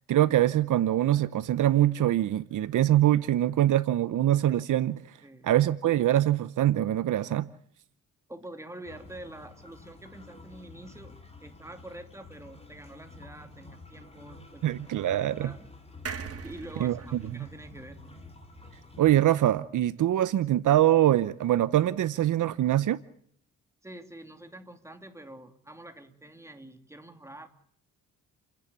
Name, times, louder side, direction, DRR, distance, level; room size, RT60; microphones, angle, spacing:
voice 1, 0.1-5.0 5.4-7.5 14.6-15.5 16.8-17.0 17.3-17.5 19.0-23.0, right 13 dB, 65° right, 0.8 m, -24 dB
voice 2, 5.2-5.5 8.3-11.2 11.4-15.6 16.4-18.1 23.8-27.5, right 1 dB, 10° right, 2.8 m, -46 dB
sound 1, 8.9-19.3, left 3 dB, 20° left, 4.0 m, -50 dB
sound 2, 16.1-19.5 19.9-20.0 20.2-20.3, right 5 dB, 45° right, 2.7 m, -43 dB
30.0 x 10.5 x 8.5 m
cardioid pair, 80°, 33 cm